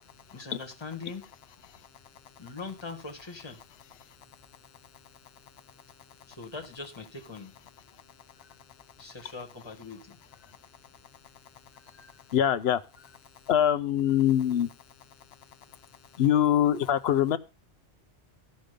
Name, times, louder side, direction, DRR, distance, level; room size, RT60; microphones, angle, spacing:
voice 1, 0.3-1.2 2.4-3.6 6.3-7.5 9.0-10.5 11.8-12.2, left 4 dB, 25° left, 3 dB, 1.7 m, -42 dB
voice 2, 12.3-12.8 13.5-14.7 16.2-17.4, left 10 dB, 65° left, 14 dB, 0.9 m, -23 dB
14.0 x 5.4 x 5.1 m, 0.30 s
omnidirectional pair, 1.2 m